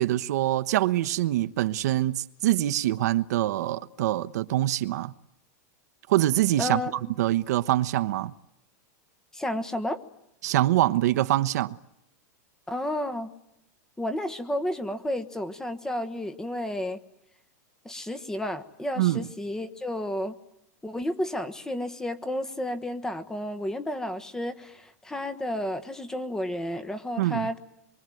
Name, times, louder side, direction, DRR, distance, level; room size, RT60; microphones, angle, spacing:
voice 1, 0.0-5.1 6.1-6.8 7.2-8.3 10.4-11.8 19.0-19.3 27.2-27.5, right 14 dB, 70° right, 1.1 m, -24 dB
voice 2, 6.6-6.9 9.3-10.0 12.7-13.3 14.0-17.0 17.8-20.4 20.8-27.6, left 1 dB, 5° left, 1.4 m, -31 dB
27.5 x 23.5 x 9.2 m
supercardioid pair, 160°, 9 cm